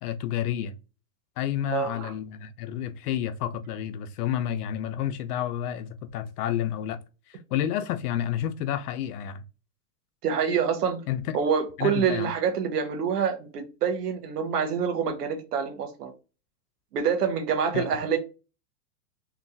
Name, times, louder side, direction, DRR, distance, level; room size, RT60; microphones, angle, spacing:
voice 1, 0.0-0.8 1.4-7.0 7.3-9.4 11.1-11.2 11.8-12.3 17.7-17.9, left 10 dB, 75° left, 0.6 m, -30 dB
voice 2, 1.6-2.1 10.2-11.0 11.3-16.1 16.9-18.2, right 7 dB, 85° right, 0.9 m, -26 dB
2.9 x 2.2 x 2.5 m
hypercardioid pair, 130°, 46 cm